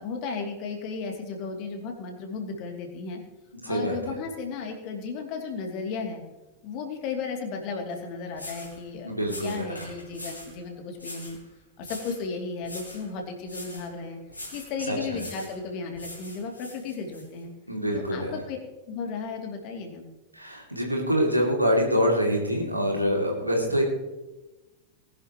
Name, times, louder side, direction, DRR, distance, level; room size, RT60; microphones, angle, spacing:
voice 1, 0.0-3.2 3.6-6.2 6.6-11.4 11.8-17.5 17.9-18.6 18.9-20.1 23.7-23.8, left 4 dB, 45° left, 2 dB, 2.8 m, -34 dB
voice 2, 3.6-4.0 9.0-9.9 14.9-15.2 17.7-18.4 20.3-23.8, equal, 90° right, 0 dB, 2.8 m, -25 dB
sound 1, 7.9-8.0 8.3-8.8 9.2-10.5 11.0-11.4 11.8-12.3 12.6-13.1 13.5-13.9 14.3-14.7 15.1-15.6 15.9-17.2, left 1 dB, 85° left, 4.2 m, -42 dB
20.0 x 11.0 x 3.1 m, 1.1 s
figure-of-eight pair, 90°, 0 cm